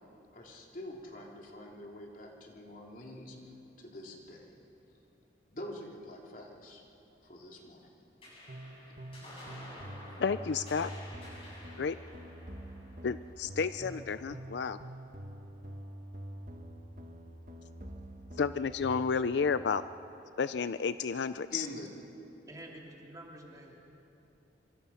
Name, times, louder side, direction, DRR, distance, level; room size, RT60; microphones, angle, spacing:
voice 1, 0.3-3.4 3.8-4.4 5.5-6.8 7.2-7.9 21.5-21.9, left 1 dB, 50° left, -1 dB, 3.3 m, -45 dB
sound 1, 8.2-15.0, left 1 dB, 30° left, 7.9 m, -52 dB
sound 2, 8.5-19.1, right 1 dB, 45° right, 1.6 m, -46 dB
voice 2, 10.2-10.9 11.8-12.0 13.0-14.8 18.4-19.8 20.4-21.7, left 5 dB, 70° left, 13 dB, 0.4 m, -31 dB
voice 3, 22.5-23.8, right 1 dB, 20° right, -1 dB, 3.0 m, -48 dB
27.0 x 25.5 x 5.7 m, 2.9 s
head